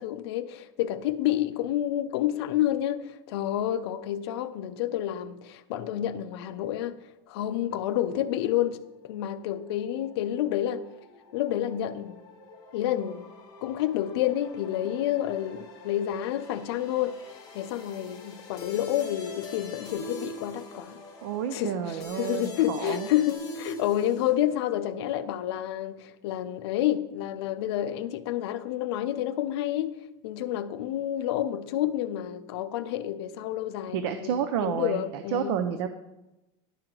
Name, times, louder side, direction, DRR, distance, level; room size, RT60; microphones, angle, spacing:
voice 1, 0.0-7.0 7.3-10.9 11.3-12.2 12.7-13.3 13.6-17.2 17.5-21.0 21.5-30.0 30.2-35.6, left 12 dB, 70° left, 0.5 m, -29 dB
sound 1, 8.4-24.3, left 2 dB, 25° left, 1.3 m, -45 dB
voice 2, 21.2-23.1 33.9-35.9, right 9 dB, 70° right, 0.5 m, -30 dB
11.0 x 4.5 x 3.8 m
supercardioid pair, 180°, 14 cm